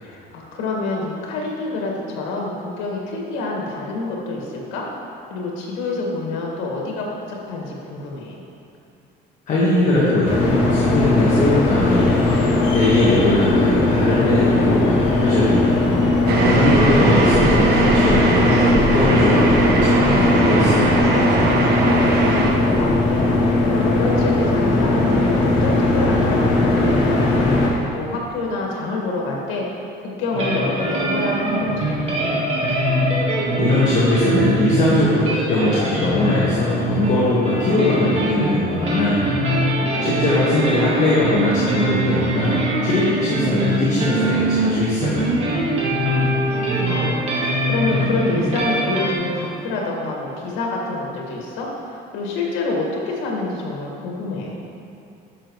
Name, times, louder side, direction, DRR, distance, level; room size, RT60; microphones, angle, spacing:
voice 1, 0.0-4.8 5.3-8.4 16.2-17.1 21.9-23.3 23.7-27.4 27.9-32.5 39.7-40.3 40.7-41.2 45.9-54.5, left 2 dB, 85° left, -2 dB, 1.7 m, -27 dB
voice 2, 9.5-12.4 12.7-15.9 16.5-21.2 33.6-39.4 40.0-45.4, left 2 dB, 40° left, -8 dB, 1.4 m, -20 dB
sound 1, 10.2-27.7, left 2 dB, 70° left, 1.8 m, -18 dB
sound 2, 16.3-22.5, right 3 dB, 55° right, 0.9 m, -19 dB
sound 3, 30.3-49.1, right 1 dB, 30° right, 1.5 m, -22 dB
11.0 x 6.3 x 3.1 m, 2.6 s
cardioid pair, 160°, 20 cm